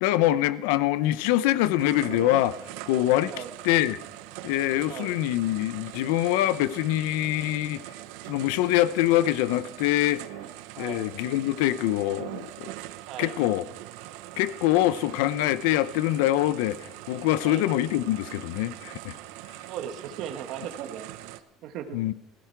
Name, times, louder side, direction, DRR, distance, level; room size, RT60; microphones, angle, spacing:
voice 1, 0.0-2.6 2.9-3.3 3.6-4.0 4.4-7.8 8.3-10.2 10.8-12.7 13.2-13.7 14.4-19.2 21.9-22.1, left 14 dB, 85° left, 0.6 m, -24 dB
sound 1, 1.8-21.4, right 15 dB, 75° right, 0.8 m, -42 dB
voice 2, 10.7-11.0 13.1-13.3 17.4-17.7 19.7-21.1 21.6-22.0, right 10 dB, 50° right, 1.4 m, -37 dB
16.5 x 15.5 x 4.6 m
cardioid pair, 175°, 0 cm